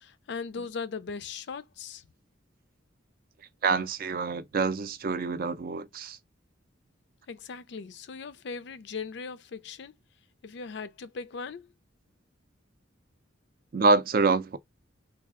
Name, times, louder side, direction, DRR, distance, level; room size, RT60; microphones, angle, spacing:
voice 1, 0.0-2.0 7.3-9.9 10.4-11.7, left 5 dB, 60° left, 0.4 m, -39 dB
voice 2, 3.6-6.2 13.7-14.6, right 4 dB, 45° right, 0.4 m, -26 dB
3.3 x 2.3 x 3.5 m
head